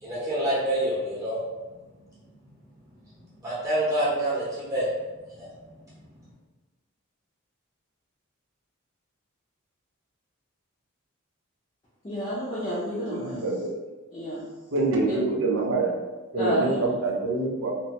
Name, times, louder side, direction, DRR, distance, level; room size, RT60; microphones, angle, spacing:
voice 1, 0.0-1.4 3.4-4.9 5.4-5.5, right 1 dB, 15° right, -10 dB, 0.8 m, -26 dB
voice 2, 12.0-13.4 14.1-14.4 15.1-15.2 16.4-16.9, equal, 25° left, -9 dB, 0.5 m, -30 dB
voice 3, 12.9-13.7 14.7-15.9 16.3-17.7, right 3 dB, 70° right, -1 dB, 0.5 m, -26 dB
2.8 x 2.1 x 2.8 m, 1.2 s
head